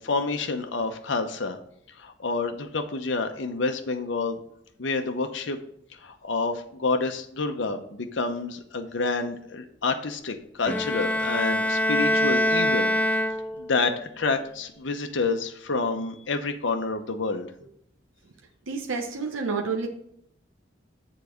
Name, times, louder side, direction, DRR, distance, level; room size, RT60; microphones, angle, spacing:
voice 1, 0.0-1.6 2.0-4.4 4.8-5.6 5.9-13.1 13.6-17.5, left 3 dB, 70° left, 6 dB, 0.8 m, -28 dB
Bowed string instrument, 10.7-13.8, equal, 10° left, 0.3 m, -24 dB
voice 2, 18.7-19.9, right 4 dB, 85° right, 2 dB, 1.0 m, -29 dB
7.0 x 4.0 x 6.3 m, 0.70 s
head